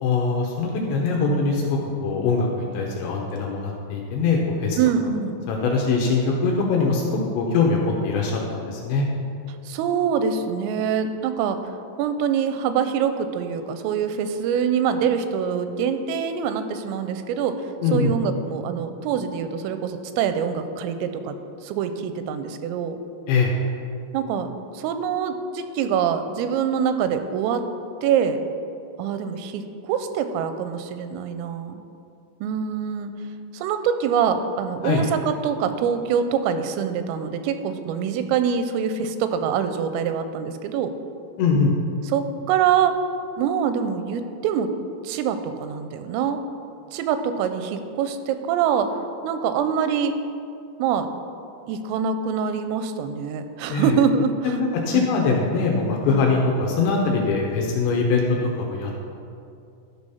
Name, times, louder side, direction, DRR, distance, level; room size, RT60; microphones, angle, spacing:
voice 1, 0.0-4.8 5.5-7.0 7.3-9.1 17.8-18.1 23.3-23.5 34.8-35.0 41.4-41.7 53.7-53.9 54.4-58.2 58.6-58.9, left 4 dB, 75° left, -1 dB, 2.7 m, -22 dB
voice 2, 4.8-5.4 9.7-11.6 12.0-17.6 17.9-21.3 21.6-23.0 24.1-27.7 28.0-28.4 29.0-31.8 32.4-33.1 33.5-40.9 42.1-42.9 43.4-44.7 45.0-46.4 46.9-48.9 49.2-50.2 50.8-51.1 51.7-54.6 54.9-55.1 56.1-56.3, right 7 dB, 85° right, 9 dB, 3.2 m, -24 dB
12.5 x 5.1 x 5.6 m, 2.5 s
omnidirectional pair, 5.8 m